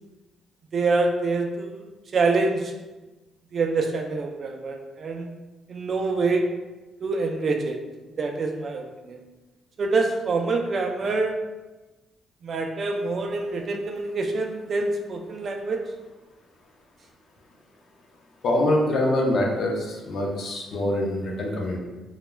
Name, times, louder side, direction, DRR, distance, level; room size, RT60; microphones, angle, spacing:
voice 1, 0.7-2.7 3.5-5.3 5.7-6.5 7.0-7.8 8.2-9.2 9.8-11.4 12.4-15.8, right 3 dB, 50° right, 4 dB, 0.3 m, -26 dB
voice 2, 18.4-21.8, left 1 dB, 60° left, -1 dB, 0.6 m, -24 dB
2.2 x 2.1 x 3.1 m, 1.1 s
cardioid pair, 90°, 0 cm